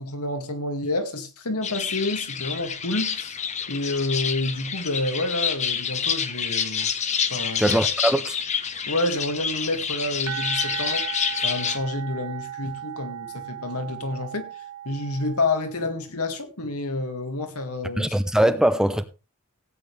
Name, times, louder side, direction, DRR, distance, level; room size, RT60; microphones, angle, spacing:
voice 1, 0.0-3.4 3.7-6.9 7.3-7.8 8.9-11.1 11.4-14.5 14.9-18.2 18.4-18.6, left 2 dB, 85° left, 2.1 m, -29 dB
sound 1, 1.6-11.8, left 7 dB, 30° left, 0.9 m, -28 dB
voice 2, 7.6-8.4 18.0-19.0, right 1 dB, 5° right, 0.6 m, -21 dB
sound 2, 10.3-15.9, right 11 dB, 80° right, 0.8 m, -36 dB
16.5 x 9.1 x 3.3 m
head